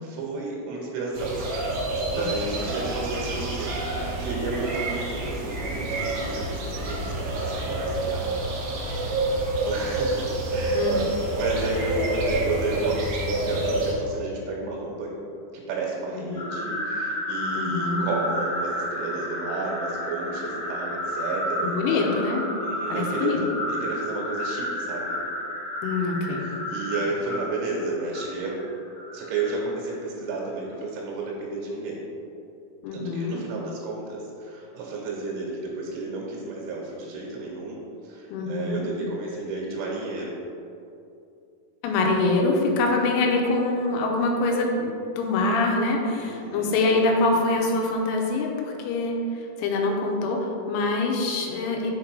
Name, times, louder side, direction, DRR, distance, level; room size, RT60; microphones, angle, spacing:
voice 1, 0.0-1.4 2.1-3.7 4.2-8.4 9.3-15.2 15.5-22.1 22.6-25.2 26.4-28.6 29.1-32.0 32.9-40.3 46.1-46.8, right 3 dB, 90° right, -3 dB, 3.6 m, -32 dB
sound 1, 1.1-13.9, right 2 dB, 70° right, 2.4 m, -28 dB
sound 2, 16.3-29.7, left 1 dB, 70° left, 2.3 m, -31 dB
voice 2, 17.6-18.1 21.6-22.4 22.9-23.4 25.8-26.5 32.8-33.4 38.3-38.8 41.8-49.2 49.6-51.9, left 3 dB, 90° left, 1 dB, 3.1 m, -24 dB
7.3 x 3.6 x 4.6 m, 2.6 s
omnidirectional pair, 5.5 m